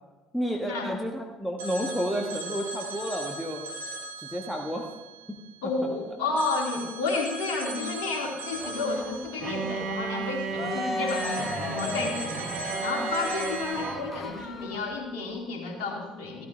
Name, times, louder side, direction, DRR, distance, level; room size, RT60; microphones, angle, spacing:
voice 1, 0.3-3.6 4.3-4.9 5.3-5.4, equal, 5° left, 0 dB, 1.5 m, -31 dB
Telephone, 1.6-5.9 6.4-10.6 11.1-14.0, right 2 dB, 75° right, 1.4 m, -39 dB
voice 2, 5.6-16.5, left 3 dB, 60° left, 0 dB, 2.8 m, -31 dB
Cheering, 8.5-15.0, left 3 dB, 30° left, 1.4 m, -37 dB
Bowed string instrument, 9.4-14.3, right 5 dB, 45° right, 1.7 m, -34 dB
14.5 x 13.5 x 3.3 m, 1.2 s
figure-of-eight pair, 55°, 0 cm